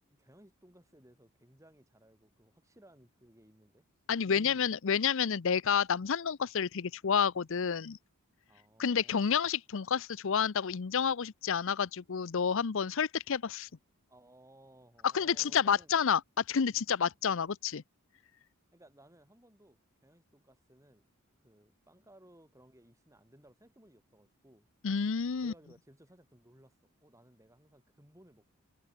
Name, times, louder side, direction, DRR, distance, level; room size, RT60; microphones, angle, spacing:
voice 1, 0.1-3.8 4.3-4.8 8.5-9.3 14.1-15.9 18.7-21.0 21.4-24.7 25.4-28.5, right 1 dB, 15° right, 7.2 m, -60 dB
voice 2, 4.1-8.0 8.8-13.7 15.1-17.8 24.8-25.5, left 7 dB, 60° left, 0.6 m, -30 dB
head